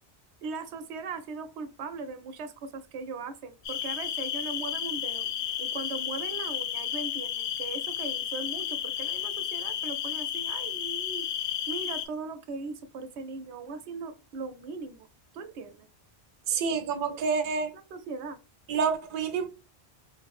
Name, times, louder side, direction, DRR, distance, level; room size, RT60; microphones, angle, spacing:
voice 1, 0.4-5.3 5.6-15.1 15.3-15.9 17.7-18.4, right 4 dB, 90° right, 0.9 m, -39 dB
sound 1, 3.7-12.1, left 10 dB, 90° left, 0.9 m, -32 dB
voice 2, 16.5-17.7 18.7-19.5, right 5 dB, 55° right, 0.7 m, -28 dB
4.6 x 2.0 x 2.3 m
omnidirectional pair, 1.1 m